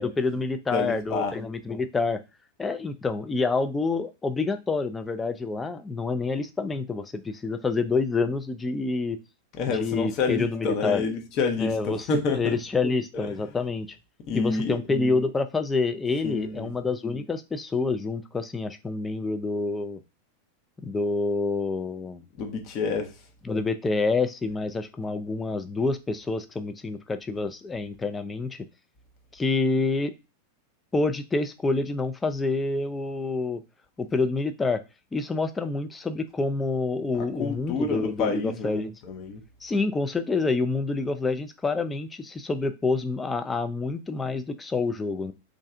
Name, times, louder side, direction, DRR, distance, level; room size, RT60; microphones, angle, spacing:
voice 1, 0.0-2.2 2.6-9.2 9.7-11.0 11.6-12.1 12.3-13.9 14.3-20.0 20.8-22.2 23.4-28.7 29.3-30.1 30.9-33.6 34.0-34.8 35.1-38.9 39.6-45.3, left 3 dB, 15° left, 0.4 m, -27 dB
voice 2, 0.7-1.3 9.6-12.6 13.1-13.3 14.3-14.8 16.2-16.7 22.4-23.1 37.1-39.4, left 4 dB, 40° left, 0.9 m, -28 dB
3.1 x 2.5 x 3.6 m
figure-of-eight pair, 90°, 0 cm